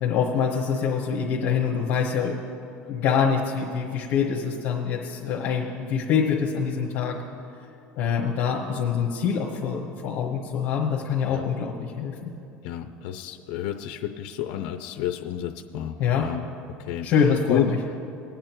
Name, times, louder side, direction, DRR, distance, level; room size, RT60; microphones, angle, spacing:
voice 1, 0.0-2.4 2.8-7.2 8.0-12.3 16.0-16.2 17.0-17.8, left 7 dB, 50° left, -3 dB, 1.2 m, -25 dB
voice 2, 12.6-16.4 16.8-17.1 17.5-17.7, left 11 dB, 70° left, 6 dB, 0.6 m, -30 dB
20.5 x 8.8 x 3.0 m, 2.9 s
cardioid pair, 150°, 5 cm